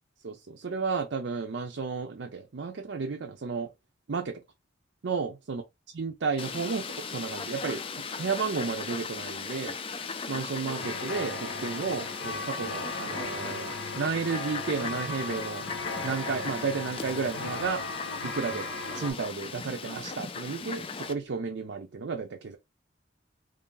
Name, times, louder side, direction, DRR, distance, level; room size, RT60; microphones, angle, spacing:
voice 1, 0.2-3.7 4.1-4.4 5.0-5.6 5.9-7.8 8.2-9.8 10.3-15.6 16.0-17.8 18.2-18.7 18.9-22.6, right 5 dB, 70° right, 0.5 m, -32 dB
Fowl, 6.4-21.1, left 5 dB, 30° left, 0.4 m, -38 dB
sound 1, 10.8-19.1, left 3 dB, 75° left, 1.1 m, -37 dB
3.2 x 2.6 x 3.7 m
head